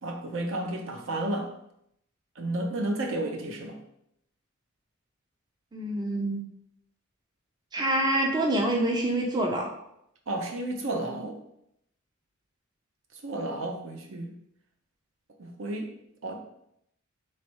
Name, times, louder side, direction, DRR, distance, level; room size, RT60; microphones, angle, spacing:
voice 1, 0.0-1.5 2.4-3.8 10.3-11.4 13.2-14.3 15.4-15.9 16.2-16.4, right 1 dB, 65° right, 3 dB, 0.7 m, -32 dB
voice 2, 5.7-6.4 7.7-9.7, right 1 dB, 20° right, 0 dB, 0.5 m, -26 dB
3.3 x 3.1 x 4.5 m, 0.76 s
head